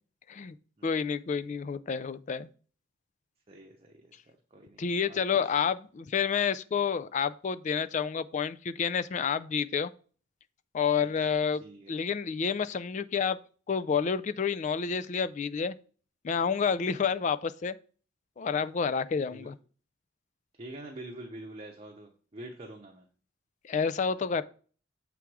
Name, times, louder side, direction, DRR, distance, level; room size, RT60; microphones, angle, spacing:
voice 1, 0.8-2.5 4.8-9.9 10.7-11.6 11.9-13.4 13.7-15.7 16.2-17.8 18.4-19.6 23.6-24.4, left 6 dB, 40° left, 0.3 m, -29 dB
voice 2, 3.5-5.5 11.0-11.3 11.6-12.0 19.3-19.5 20.6-23.0, right 1 dB, 30° right, 0.8 m, -46 dB
7.4 x 3.4 x 4.7 m
head